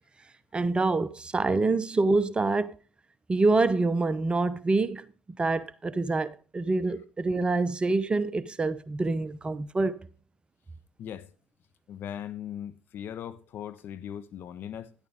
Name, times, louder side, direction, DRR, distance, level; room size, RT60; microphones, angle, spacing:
voice 1, 0.5-2.8 3.3-5.1 5.4-10.1, right 3 dB, 25° right, 0.8 m, -26 dB
voice 2, 11.0-11.3 11.9-14.9, left 9 dB, 55° left, 1.3 m, -39 dB
13.5 x 10.5 x 3.6 m
hypercardioid pair, 75°, 4 cm